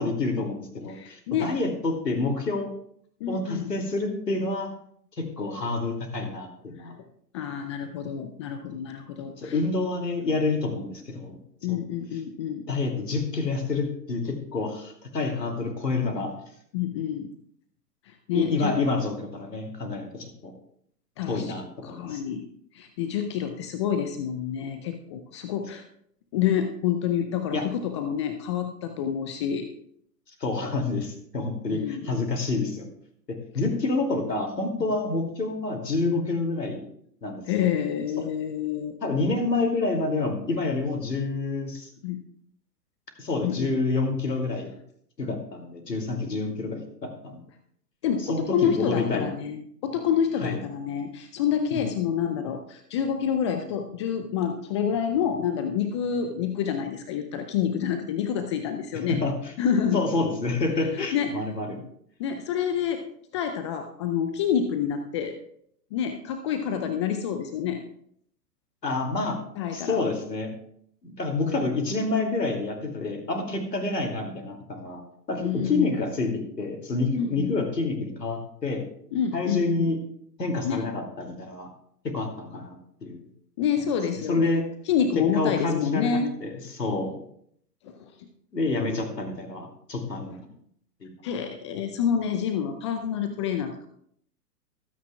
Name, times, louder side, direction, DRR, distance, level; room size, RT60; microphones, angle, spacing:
voice 1, 0.0-2.7 3.3-4.7 5.2-6.9 9.4-11.3 11.7-11.8 12.7-16.3 18.3-20.5 21.3-22.2 27.5-27.6 30.4-32.9 33.5-36.9 37.2-37.7 38.2-38.3 39.0-41.9 43.2-44.7 45.2-47.4 48.2-49.3 50.4-50.6 51.7-51.9 58.9-59.3 59.9-61.8 68.8-69.4 69.7-70.5 71.0-75.0 75.3-78.8 79.3-80.0 80.4-81.7 82.0-82.8 83.0-83.2 84.3-84.6 85.2-87.2 88.5-90.4 91.0-91.1, left 3 dB, 80° left, 4 dB, 2.7 m, -28 dB
voice 2, 0.9-1.5 3.2-3.7 6.9-7.0 7.3-9.5 11.6-12.6 16.7-17.3 18.1-18.7 21.2-21.5 21.8-22.5 22.7-25.8 26.3-29.7 31.7-32.0 37.5-39.0 42.0-42.2 43.4-43.7 48.0-49.6 49.8-59.2 59.6-60.0 60.9-61.3 62.2-63.0 63.3-65.3 65.9-67.8 69.6-70.0 75.4-75.9 77.2-77.5 79.1-79.9 80.6-80.8 83.6-84.5 84.9-86.3 87.8-88.3 91.2-93.9, left 8 dB, 20° left, 7 dB, 0.4 m, -28 dB
22.5 x 9.3 x 2.3 m, 0.67 s
figure-of-eight pair, 110°, 48 cm